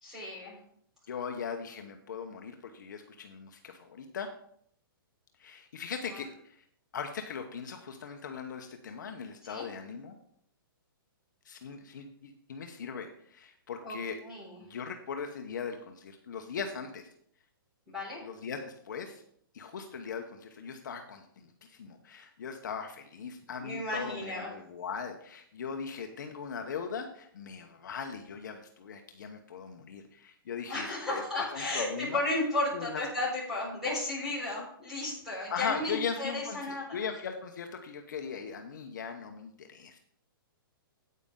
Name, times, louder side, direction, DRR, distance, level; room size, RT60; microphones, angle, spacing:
voice 1, 0.0-0.6 9.5-9.7 13.8-14.0 14.2-14.6 17.9-18.2 23.6-24.5 30.7-37.0, left 2 dB, 5° right, -7 dB, 3.7 m, -34 dB
voice 2, 1.1-4.3 5.4-6.6 6.9-10.2 11.4-14.2 14.7-17.1 18.2-19.2 19.5-32.2 32.7-33.0 35.5-40.0, left 6 dB, 55° left, 4 dB, 0.9 m, -39 dB
9.5 x 8.5 x 3.7 m, 0.66 s
hypercardioid pair, 175°, 12 cm